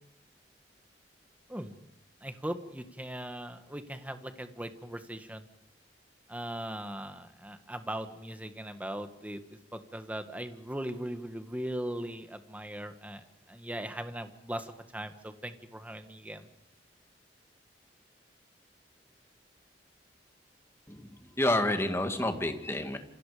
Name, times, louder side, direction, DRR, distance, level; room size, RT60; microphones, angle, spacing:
voice 1, 2.2-5.5 6.3-16.5, right 1 dB, 10° right, 7 dB, 1.7 m, -39 dB
voice 2, 21.4-23.0, left 1 dB, 15° left, 5 dB, 2.2 m, -29 dB
28.0 x 28.0 x 5.1 m, 0.79 s
head